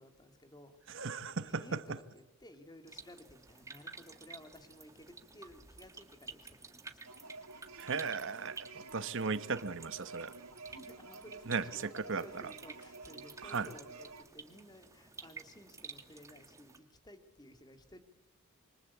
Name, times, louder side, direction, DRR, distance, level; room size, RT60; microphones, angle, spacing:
voice 1, 0.0-1.0 1.4-7.0 10.6-18.0, left 1 dB, 20° left, 2.5 m, -56 dB
voice 2, 0.9-1.8 7.8-10.3 11.5-12.4 13.4-13.7, right 4 dB, 60° right, 1.1 m, -36 dB
sound 1, 2.9-16.8, right 4 dB, 15° right, 2.2 m, -52 dB
sound 2, 7.1-14.2, right 3 dB, 80° right, 2.8 m, -51 dB
27.5 x 25.0 x 8.5 m
head